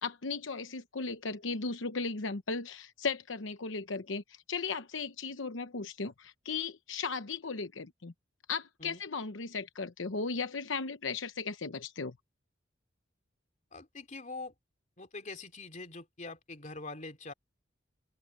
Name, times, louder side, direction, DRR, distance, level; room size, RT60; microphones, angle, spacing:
voice 1, 0.0-8.1 8.5-12.2, left 4 dB, 80° left, 0.9 m, -36 dB
voice 2, 13.7-14.5 15.0-17.3, left 3 dB, 40° left, 3.2 m, -44 dB
open air
head